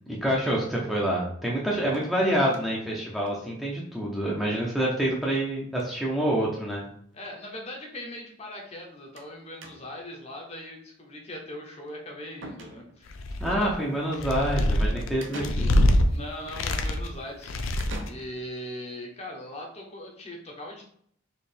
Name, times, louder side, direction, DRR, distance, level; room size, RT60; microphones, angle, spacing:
voice 1, 0.1-6.9 13.4-15.7, right 1 dB, ahead, -4 dB, 0.7 m, -27 dB
sound 1, 1.9-2.9 3.3-3.4 3.6-3.7 4.0-4.1 5.2-5.5 5.7-6.1 6.9-7.0 7.3-7.4 9.2-9.3 9.6-10.1 11.9-12.0 12.4-13.2 15.2-16.1 17.8-18.7, right 1 dB, 60° right, 0.7 m, -44 dB
voice 2, 7.1-13.2 13.5-13.8 14.8-15.0 16.1-17.5 18.1-20.9, left 1 dB, 30° left, 0 dB, 0.9 m, -40 dB
sound 2, 13.1-13.7 14.1-16.0 16.5-17.1 17.4-18.1, left 1 dB, 75° left, 0.5 m, -24 dB
4.4 x 3.1 x 3.4 m, 0.64 s
head